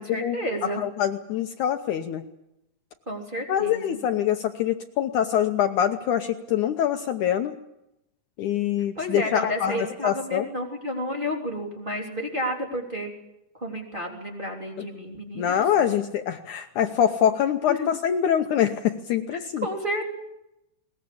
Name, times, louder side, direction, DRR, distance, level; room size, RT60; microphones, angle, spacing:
voice 1, 0.0-0.8 3.1-4.0 8.9-13.1 13.5-16.0 17.7-17.9 19.3-20.1, equal, 15° right, -1 dB, 3.1 m, -31 dB
voice 2, 0.8-2.2 3.5-7.6 8.4-10.5 15.4-19.7, left 9 dB, 70° left, 6 dB, 2.1 m, -24 dB
21.0 x 20.0 x 8.6 m, 0.88 s
omnidirectional pair, 4.1 m